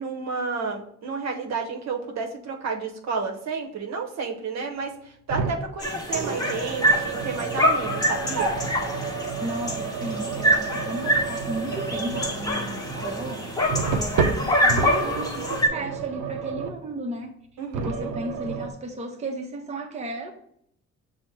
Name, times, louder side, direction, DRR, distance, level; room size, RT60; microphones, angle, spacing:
voice 1, 0.0-8.6 17.6-18.1, right 4 dB, 60° right, 0.8 m, -31 dB
sound 1, 5.3-5.7 6.1-16.9 17.7-18.7, right 5 dB, 90° right, 0.5 m, -31 dB
sound 2, 5.8-15.7, equal, 10° left, 1.0 m, -26 dB
voice 2, 9.4-17.3 17.8-20.3, right 2 dB, 20° right, 0.7 m, -34 dB
5.8 x 2.1 x 4.4 m
cardioid pair, 90°, 30 cm